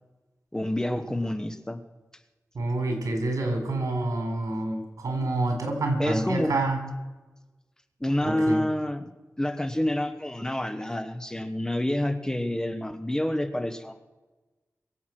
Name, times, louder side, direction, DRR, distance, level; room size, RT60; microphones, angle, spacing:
voice 1, 0.5-1.8 6.0-6.5 8.0-9.1 9.4-13.9, left 1 dB, 10° left, 8 dB, 1.2 m, -28 dB
voice 2, 2.5-6.8 8.2-8.6, right 2 dB, 85° right, 4 dB, 4.0 m, -27 dB
22.5 x 8.1 x 6.0 m, 1.2 s
wide cardioid pair, 90°, 6 cm